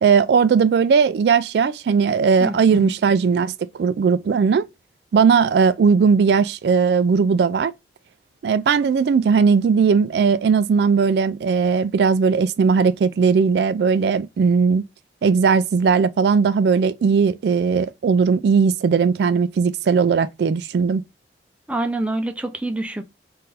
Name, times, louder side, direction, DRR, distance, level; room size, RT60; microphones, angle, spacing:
voice 1, 0.0-4.7 5.1-7.7 8.4-14.8 15.2-21.0, right 5 dB, 65° right, 0.3 m, -18 dB
voice 2, 2.4-2.9 21.7-23.0, right 1 dB, 5° right, 0.5 m, -26 dB
3.8 x 2.6 x 4.1 m
head